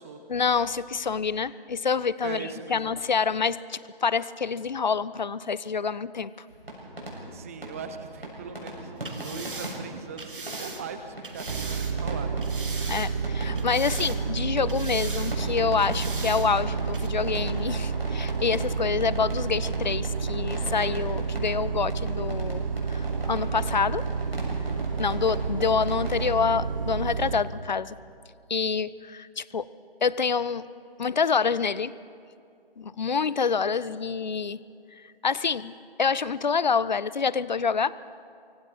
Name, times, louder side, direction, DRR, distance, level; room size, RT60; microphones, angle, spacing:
voice 1, 0.3-6.5 12.9-22.6 22.9-24.1 25.0-28.0 28.5-29.7 30.0-30.6 31.0-31.9 32.8-34.6 35.2-35.7 36.0-37.9, left 5 dB, 50° left, 18 dB, 0.5 m, -27 dB
voice 2, 2.2-3.0 7.3-12.4 23.4-23.6, right 6 dB, 15° right, 9 dB, 0.7 m, -40 dB
sound 1, 6.5-26.4, right 1 dB, 80° right, 7.1 m, -40 dB
sound 2, 9.0-12.0 12.4-13.3 13.6-14.4 14.7-15.4 15.8-16.5 16.9-17.1, right 3 dB, 60° right, 2.4 m, -40 dB
sound 3, 11.5-27.4, right 5 dB, 35° right, 1.1 m, -30 dB
24.5 x 24.5 x 4.5 m, 2.4 s
figure-of-eight pair, 145°, 30 cm